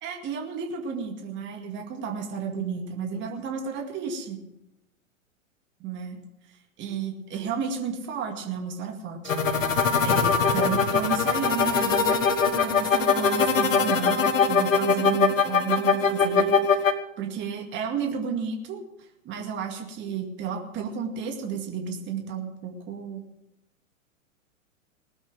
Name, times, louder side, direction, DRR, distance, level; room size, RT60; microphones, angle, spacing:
voice 1, 0.0-4.4 5.8-6.2 6.8-9.3 10.0-16.9 17.2-23.2, right 6 dB, 30° right, 2 dB, 2.2 m, -32 dB
sound 1, 9.3-16.9, left 5 dB, 70° left, 1.6 m, -22 dB
19.5 x 7.9 x 7.7 m, 0.89 s
figure-of-eight pair, 105°, 40 cm